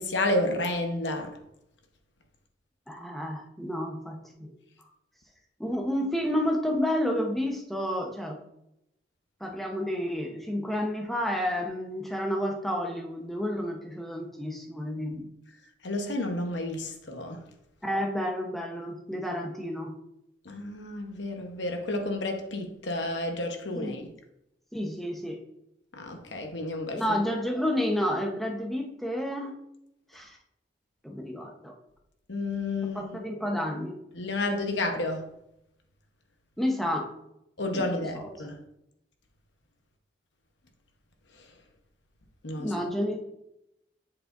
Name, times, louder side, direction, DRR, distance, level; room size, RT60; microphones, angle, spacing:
voice 1, 0.0-1.3 15.8-17.4 20.4-24.1 25.9-27.2 32.3-33.2 34.1-35.2 37.6-38.6 42.4-42.7, left 2 dB, 90° left, 1.0 m, -31 dB
voice 2, 2.9-4.5 5.6-8.4 9.4-15.3 17.8-19.9 23.7-24.0 24.7-25.4 26.9-29.5 30.1-30.4 31.0-31.7 32.8-34.0 36.6-37.1 37.7-37.9 38.1-38.5 42.6-43.2, equal, ahead, 0.9 m, -30 dB
7.6 x 6.4 x 2.6 m
head